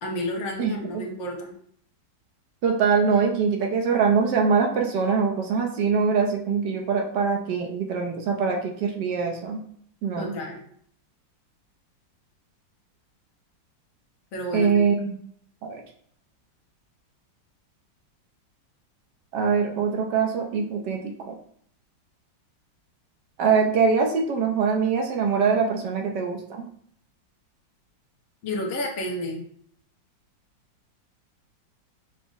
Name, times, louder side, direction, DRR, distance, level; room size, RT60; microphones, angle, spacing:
voice 1, 0.0-1.5 10.2-10.6 14.3-14.7 28.4-29.4, left 1 dB, 75° left, 0 dB, 1.6 m, -30 dB
voice 2, 0.6-1.0 2.6-9.6 10.0-10.3 14.5-15.2 15.6-15.8 19.3-21.1 23.4-26.6, right 5 dB, 70° right, 2 dB, 1.2 m, -23 dB
6.0 x 2.0 x 3.8 m, 0.63 s
omnidirectional pair, 2.1 m